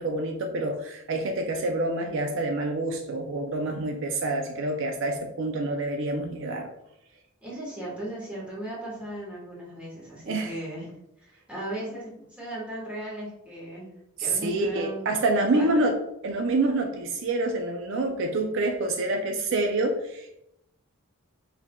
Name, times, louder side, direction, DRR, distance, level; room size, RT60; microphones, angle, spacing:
voice 1, 0.0-6.7 10.2-10.5 14.2-15.9 16.2-20.3, right 2 dB, 65° right, 3 dB, 0.5 m, -27 dB
voice 2, 7.4-10.9 11.2-13.9 14.2-15.9, right 1 dB, 5° right, -6 dB, 1.5 m, -37 dB
4.5 x 3.5 x 2.2 m, 0.82 s
head